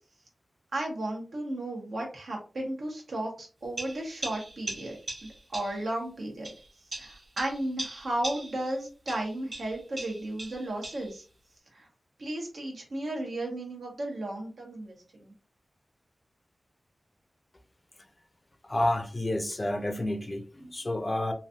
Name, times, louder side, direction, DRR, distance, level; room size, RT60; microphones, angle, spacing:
voice 1, 0.7-5.0 5.5-6.5 7.0-11.2 11.7-11.9 12.2-15.3, right 1 dB, 85° right, 1.1 m, -34 dB
sound 1, 3.8-5.9 6.4-8.8 9.1-11.2, right 2 dB, 50° right, 1.5 m, -40 dB
voice 2, 18.7-21.3, left 1 dB, 30° left, 0.5 m, -30 dB
3.1 x 2.6 x 2.4 m
wide cardioid pair, 60°, 0 cm